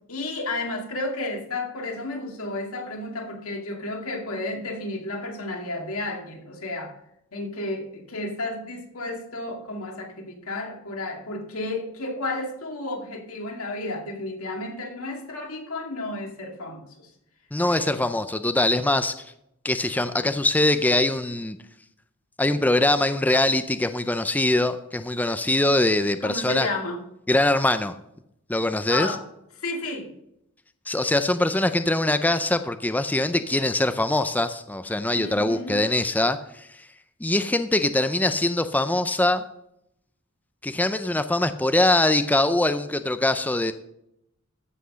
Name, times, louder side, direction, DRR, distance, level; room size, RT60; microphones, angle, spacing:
voice 1, 0.1-6.9 7.3-17.1 17.6-18.0 26.2-27.0 28.9-29.2 29.6-30.1 35.2-35.8, left 2 dB, 80° left, 2 dB, 2.3 m, -32 dB
voice 2, 17.5-19.2 19.6-21.6 22.4-26.7 27.3-27.9 28.5-29.2 30.9-36.7 37.2-39.4 40.6-43.7, left 2 dB, 10° left, 10 dB, 0.4 m, -23 dB
14.0 x 5.9 x 6.3 m, 0.79 s
head